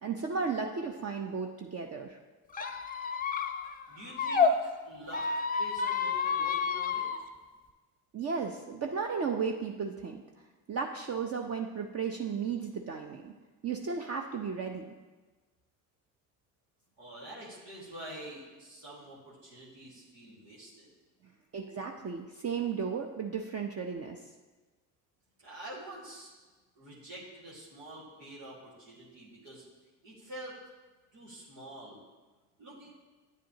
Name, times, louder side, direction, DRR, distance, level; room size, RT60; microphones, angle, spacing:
voice 1, 0.0-2.2 8.1-10.2 10.7-13.3 13.6-14.9 21.5-24.2, right 5 dB, 35° right, 2 dB, 0.6 m, -34 dB
Squeak, 2.5-4.5 5.1-7.2, left 5 dB, 20° left, 0.6 m, -30 dB
voice 2, 3.9-5.3 5.6-7.1 17.0-20.9 25.4-26.3 26.8-29.6 30.0-30.6 31.1-32.0 32.6-32.9, right 1 dB, 85° right, -7 dB, 2.0 m, -47 dB
9.3 x 7.5 x 2.8 m, 1.3 s
hypercardioid pair, 60°, 47 cm